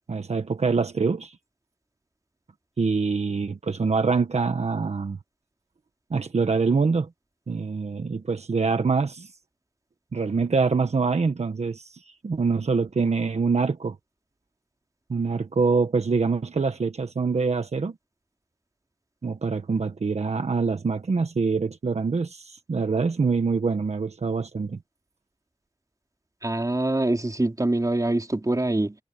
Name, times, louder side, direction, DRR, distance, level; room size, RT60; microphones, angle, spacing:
voice 1, 0.1-1.4 2.8-5.2 6.1-7.1 7.5-9.3 10.1-13.9 15.1-18.0 19.2-24.8, right 4 dB, 75° right, 1.4 m, -25 dB
voice 2, 26.4-29.0, right 2 dB, 30° right, 4.1 m, -24 dB
cardioid pair, 40°, 11 cm